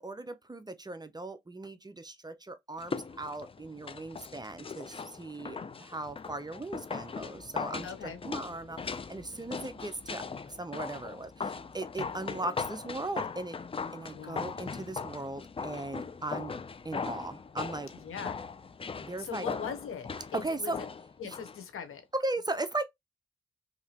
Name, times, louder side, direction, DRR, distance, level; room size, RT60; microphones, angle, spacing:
voice 1, 0.0-13.6 13.9-16.5 16.8-17.9 19.0-19.5 20.3-20.8 21.2-21.4 22.1-22.9, right 2 dB, 20° right, 0.6 m, -38 dB
sound 1, 2.8-21.6 21.9-22.0, left 5 dB, 25° left, 0.4 m, -39 dB
voice 2, 7.8-8.2 14.1-14.5 18.0-18.4 19.2-20.9 21.2-22.0, left 7 dB, 85° left, 0.9 m, -40 dB
3.2 x 2.8 x 2.8 m
cardioid pair, 70°, 21 cm